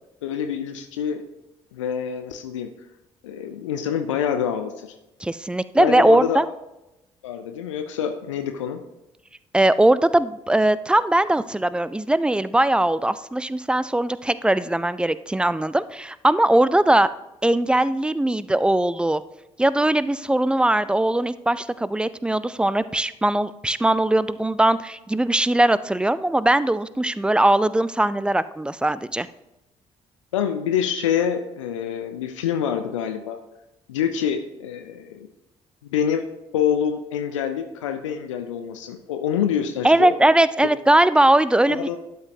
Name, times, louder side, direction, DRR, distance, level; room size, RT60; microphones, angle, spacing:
voice 1, 0.2-1.2 1.7-2.7 3.2-5.0 5.8-6.4 7.2-8.8 30.3-33.4 33.9-35.3 35.8-36.3 36.5-40.1 41.7-42.0, left 8 dB, 80° left, 6 dB, 0.5 m, -26 dB
voice 2, 5.2-6.4 9.5-17.1 17.4-19.2 19.6-29.3 39.8-42.0, right 1 dB, 5° right, 16 dB, 0.3 m, -20 dB
11.5 x 5.1 x 2.7 m, 0.93 s
figure-of-eight pair, 45°, 16 cm